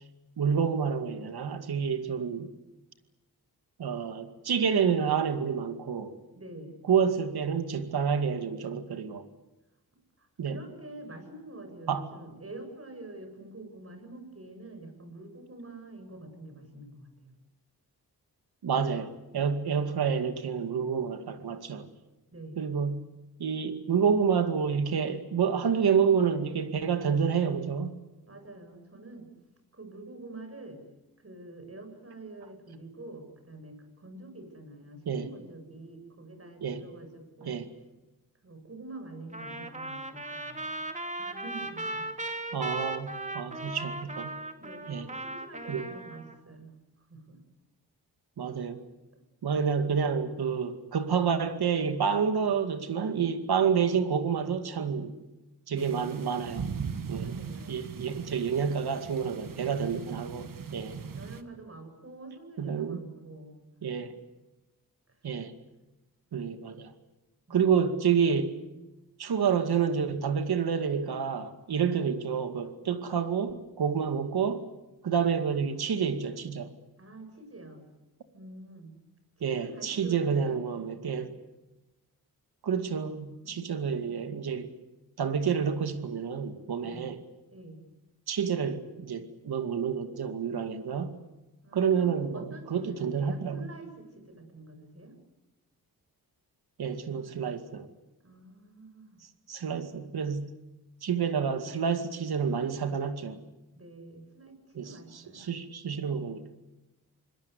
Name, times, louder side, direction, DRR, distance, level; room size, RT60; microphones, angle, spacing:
voice 1, 0.4-2.5 3.8-6.1 6.9-9.3 10.4-10.6 11.9-12.1 18.6-21.9 22.6-23.1 23.4-27.9 35.1-35.3 36.6-36.8 37.4-37.7 42.5-44.4 44.9-45.1 45.7-45.9 48.4-48.8 49.4-55.2 55.7-56.6 57.1-57.4 57.7-61.0 62.6-63.0 63.8-64.2 65.2-65.5 66.3-66.9 67.5-68.5 69.2-74.7 75.0-76.7 79.4-81.3 82.6-84.7 85.2-87.2 88.3-91.2 91.7-93.7 96.8-97.9 99.5-100.5 101.0-103.4 104.8-104.9 105.3-106.4, right 6 dB, 75° right, 2.3 m, -29 dB
voice 2, 6.3-6.8 10.2-17.3 22.3-22.7 28.3-29.3 29.7-30.8 31.2-37.6 38.4-40.7 41.2-42.1 43.5-43.7 44.6-46.7 47.1-47.4 49.5-49.8 55.7-56.2 57.2-57.8 59.7-60.0 61.1-63.6 67.5-67.6 77.0-77.8 78.3-78.9 79.4-80.6 83.4-84.1 86.8-87.1 87.5-87.8 91.6-95.2 98.2-99.2 103.7-105.6, right 2 dB, 40° right, 7.8 m, -46 dB
Trumpet, 39.3-46.4, right 2 dB, 20° right, 2.5 m, -37 dB
sound 1, 55.8-61.4, right 6 dB, 60° right, 1.8 m, -39 dB
27.0 x 21.5 x 8.4 m
cardioid pair, 70°, 38 cm